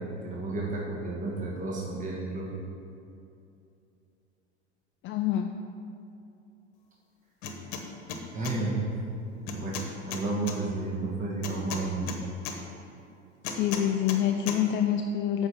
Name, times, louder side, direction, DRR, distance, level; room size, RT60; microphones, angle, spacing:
voice 1, 0.0-2.6 8.3-8.9 9.5-9.7 10.0-12.1, right 3 dB, 20° right, -4 dB, 1.4 m, -32 dB
voice 2, 5.0-5.5 13.5-15.5, left 10 dB, 35° left, 5 dB, 0.4 m, -26 dB
sound 1, 7.4-7.8 8.1-8.6 9.5-10.6 11.4-12.6 13.4-14.2 14.5-14.6, left 6 dB, 55° left, 1.1 m, -35 dB
7.8 x 4.5 x 6.8 m, 2.6 s
hypercardioid pair, 80°, 35 cm